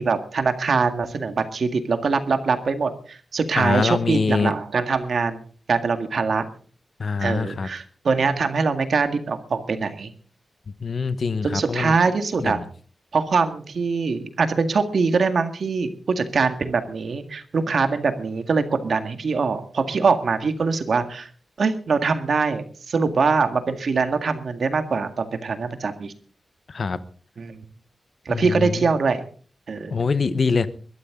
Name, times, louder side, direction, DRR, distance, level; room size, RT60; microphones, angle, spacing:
voice 1, 0.0-5.4 5.7-6.4 7.2-10.1 11.4-12.6 13.1-21.3 21.6-26.1 27.4-27.6 28.3-29.2 29.7-29.9, right 4 dB, 65° right, 8 dB, 1.9 m, -23 dB
voice 2, 3.6-4.5 7.0-7.7 10.8-11.9 12.4-12.6 26.7-27.0 28.3-28.9 29.9-30.7, left 4 dB, 55° left, 13 dB, 1.1 m, -24 dB
22.0 x 13.0 x 3.8 m, 0.42 s
wide cardioid pair, 125°, 0 cm